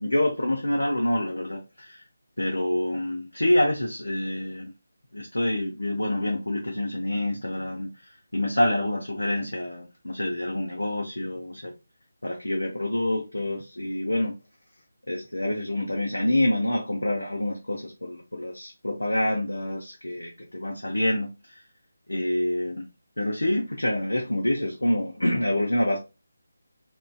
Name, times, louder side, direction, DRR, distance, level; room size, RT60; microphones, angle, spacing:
voice 1, 0.0-2.0 2.4-4.7 5.1-7.9 8.3-11.7 12.2-14.3 15.1-21.6 22.1-22.8 23.2-26.0, left 1 dB, 70° left, 0.5 m, -27 dB
2.5 x 2.2 x 2.2 m
figure-of-eight pair, 155°, 0 cm